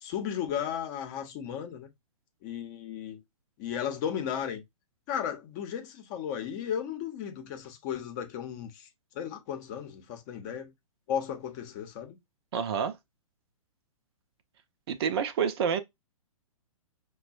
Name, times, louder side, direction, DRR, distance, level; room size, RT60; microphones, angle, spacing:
voice 1, 0.0-1.9 2.4-3.2 3.6-4.6 5.1-8.9 9.1-10.7 11.1-12.2, left 9 dB, 30° left, 0.8 m, -35 dB
voice 2, 12.5-13.0 14.9-15.8, right 7 dB, 45° right, 0.6 m, -28 dB
5.9 x 2.2 x 2.4 m
figure-of-eight pair, 120°, 18 cm